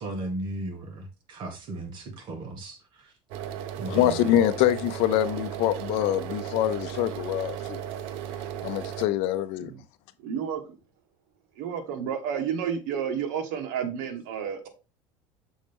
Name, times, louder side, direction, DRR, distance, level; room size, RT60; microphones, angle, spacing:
voice 1, 0.0-3.1 3.8-4.4, right 2 dB, 45° right, 1.8 m, -36 dB
sound 1, 3.3-9.1, right 10 dB, 65° right, 0.7 m, -36 dB
voice 2, 3.9-7.8 8.6-9.7, left 12 dB, 65° left, 0.6 m, -25 dB
voice 3, 10.2-10.8 11.6-14.7, right 8 dB, 80° right, 1.2 m, -31 dB
6.3 x 4.3 x 3.5 m
cardioid pair, 150°, 11 cm